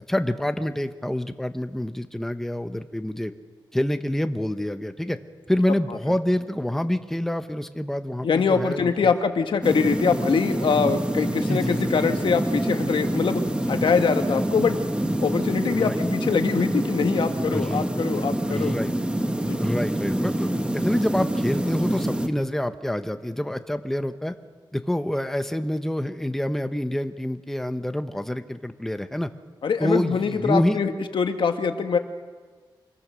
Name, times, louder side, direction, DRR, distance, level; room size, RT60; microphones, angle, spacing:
voice 1, 0.1-3.3 3.7-5.2 5.5-9.2 10.8-10.9 11.5-11.9 15.7-16.0 17.5-17.9 18.5-18.9 19.6-24.3 24.7-29.3 29.8-30.8, left 1 dB, 5° left, 8 dB, 0.9 m, -27 dB
voice 2, 8.2-13.4 13.7-14.8 15.2-18.8 19.5-19.6 29.6-32.0, left 5 dB, 85° left, 6 dB, 1.5 m, -23 dB
sound 1, 9.6-22.3, right 1 dB, 10° right, 1.4 m, -26 dB
26.0 x 22.0 x 6.3 m, 1.5 s
wide cardioid pair, 130°, 8 cm